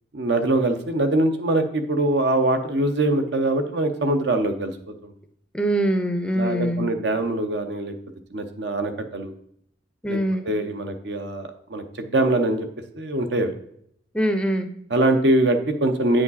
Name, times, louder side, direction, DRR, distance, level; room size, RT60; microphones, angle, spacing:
voice 1, 0.1-5.1 6.3-7.9 8.3-9.3 10.1-10.2 10.4-12.7 12.9-13.5 14.9-16.2, right 2 dB, 65° right, 7 dB, 0.8 m, -23 dB
voice 2, 5.5-6.9 10.0-10.5 14.1-14.7, right 1 dB, 5° left, 7 dB, 0.5 m, -23 dB
8.5 x 5.0 x 4.1 m, 0.70 s
head